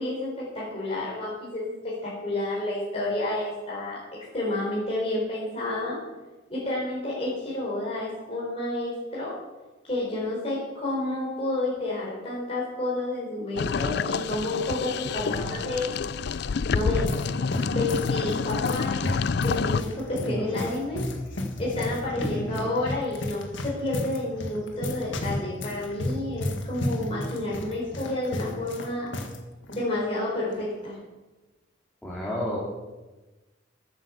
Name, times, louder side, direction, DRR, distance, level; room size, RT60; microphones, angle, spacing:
voice 1, 0.0-4.0 4.3-6.0 6.5-9.4 9.8-16.0 16.7-17.1 17.7-21.1 21.6-29.1 29.7-31.0, left 2 dB, 30° left, -6 dB, 4.1 m, -30 dB
sound 1, 13.6-19.8, left 5 dB, 60° left, 0.4 m, -28 dB
voice 2, 15.2-15.5 20.3-20.6 22.2-22.6 32.0-32.6, equal, 5° left, -6 dB, 2.6 m, -32 dB
sound 2, 16.5-29.4 29.6-29.8 30.5-30.8, left 1 dB, 75° left, 1.8 m, -33 dB
13.5 x 9.0 x 7.0 m, 1.1 s
head